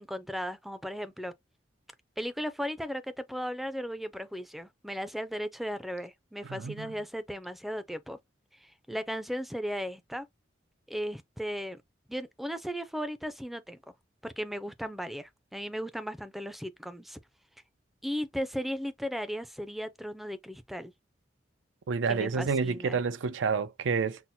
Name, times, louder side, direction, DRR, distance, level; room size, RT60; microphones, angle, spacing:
voice 1, 0.0-1.3 2.2-8.2 8.6-10.3 10.9-11.8 12.1-13.8 14.2-17.2 18.0-20.9 22.1-23.0, equal, ahead, 0.4 m, -36 dB
voice 2, 6.5-6.9 21.9-24.2, right 5 dB, 90° right, 0.5 m, -29 dB
5.8 x 2.0 x 2.6 m
head